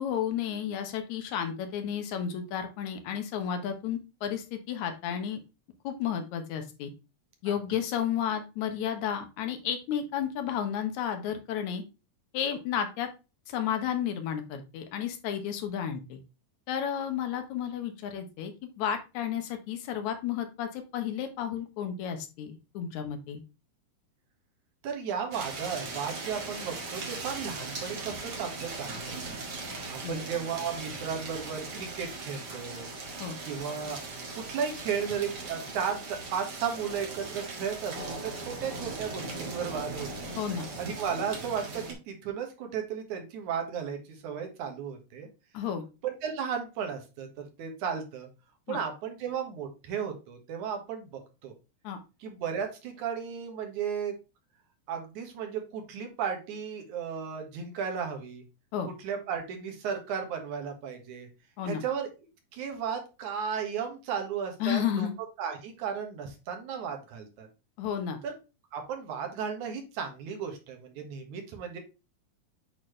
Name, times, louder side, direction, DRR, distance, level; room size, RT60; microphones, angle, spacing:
voice 1, 0.0-5.4 5.8-6.9 7.4-11.8 12.3-13.1 13.5-16.2 16.7-18.5 18.8-23.4 30.0-30.2 33.2-33.4 40.4-40.7 45.5-45.8 48.7-48.8 51.8-52.0 58.7-58.9 61.6-61.8 64.6-65.1 67.8-68.2, left 9 dB, 70° left, 6 dB, 2.3 m, -32 dB
voice 2, 24.8-29.4 29.9-32.9 33.4-34.0 34.3-40.3 40.8-45.3 46.0-48.3 48.7-51.5 52.2-54.1 54.9-58.4 59.0-61.3 61.6-62.1 62.5-65.1 65.4-67.5 68.2-68.3 68.7-71.8, right 7 dB, 75° right, 4 dB, 2.9 m, -34 dB
sound 1, 25.3-41.9, right 3 dB, 40° right, 1.9 m, -39 dB
8.6 x 4.1 x 3.2 m, 0.29 s
omnidirectional pair, 3.5 m